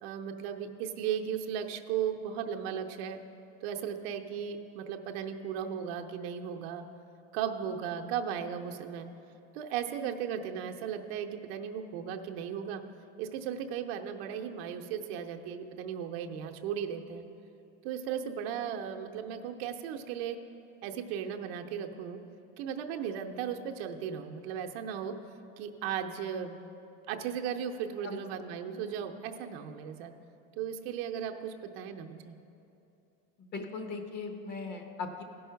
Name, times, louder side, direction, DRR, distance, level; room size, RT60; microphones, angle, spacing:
voice 1, 0.0-3.2 3.6-6.8 7.3-9.1 9.5-12.8 13.2-17.2 17.8-20.4 20.8-22.2 22.6-25.1 25.6-26.6 27.1-30.1 30.6-32.3, right 8 dB, 65° right, 4 dB, 0.8 m, -36 dB
voice 2, 33.4-35.2, left 4 dB, 30° left, 4 dB, 1.0 m, -39 dB
15.5 x 5.5 x 5.7 m, 2.8 s
cardioid pair, 160°, 32 cm